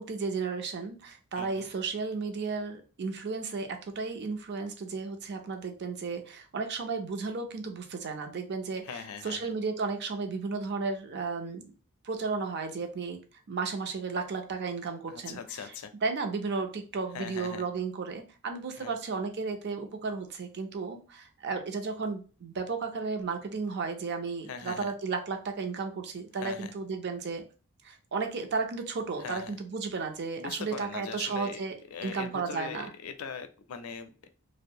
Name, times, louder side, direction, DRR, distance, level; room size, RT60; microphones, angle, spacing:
voice 1, 0.0-11.7 12.0-13.2 13.5-15.7 16.0-27.4 27.8-31.7 32.0-32.9, right 4 dB, 55° right, 6 dB, 0.5 m, -34 dB
voice 2, 1.4-1.7 8.8-9.5 15.1-15.9 17.1-17.7 18.8-19.0 24.5-24.9 26.4-26.7 29.2-29.5 30.4-31.6 31.9-34.3, left 6 dB, 80° left, 8 dB, 0.4 m, -41 dB
2.6 x 2.1 x 2.7 m, 0.35 s
head